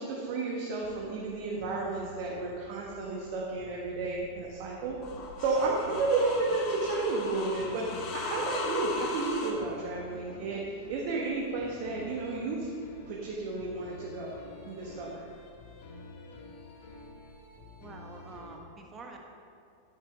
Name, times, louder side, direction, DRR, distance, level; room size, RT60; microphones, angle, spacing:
voice 1, 0.0-5.0 5.4-12.7 13.1-14.3 14.6-15.2, right 3 dB, 45° right, -4 dB, 1.5 m, -32 dB
sound 1, 0.7-18.6, left 2 dB, 55° left, 1.7 m, -50 dB
sound 2, 4.1-9.5, left 4 dB, 40° left, 1.3 m, -38 dB
voice 2, 17.8-19.2, right 3 dB, 20° right, 1 dB, 1.5 m, -47 dB
10.0 x 9.8 x 3.9 m, 2.5 s
figure-of-eight pair, 90°, 0 cm